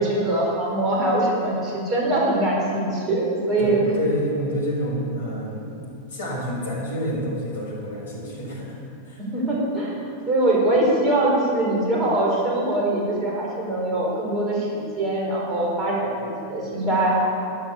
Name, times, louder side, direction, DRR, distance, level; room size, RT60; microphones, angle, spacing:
voice 1, 0.0-3.8 9.3-9.9 10.3-17.2, right 1 dB, 30° right, -3 dB, 4.6 m, -22 dB
voice 2, 3.6-5.8 6.1-8.8 9.0-9.2, equal, 65° left, -3 dB, 4.3 m, -28 dB
12.5 x 11.5 x 7.1 m, 2.5 s
figure-of-eight pair, 90°, 0 cm